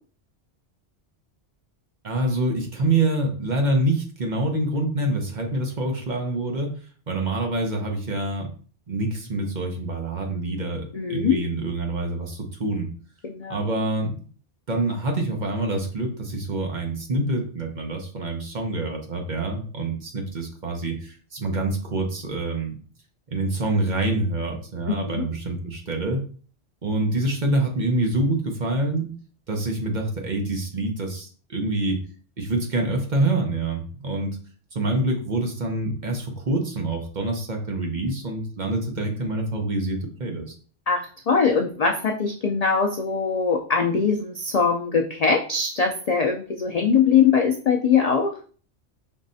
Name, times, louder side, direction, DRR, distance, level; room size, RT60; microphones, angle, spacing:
voice 1, 2.0-6.7 7.1-8.5 8.9-12.9 13.5-14.1 14.7-22.8 23.3-26.2 26.8-29.1 29.5-32.0 32.4-34.3 34.7-40.5, right 2 dB, 45° right, 2 dB, 0.9 m, -26 dB
voice 2, 10.9-11.4 13.2-13.6 24.9-25.2 40.9-48.3, left 6 dB, 65° left, 2 dB, 0.4 m, -22 dB
5.4 x 3.1 x 2.6 m, 0.43 s
omnidirectional pair, 1.2 m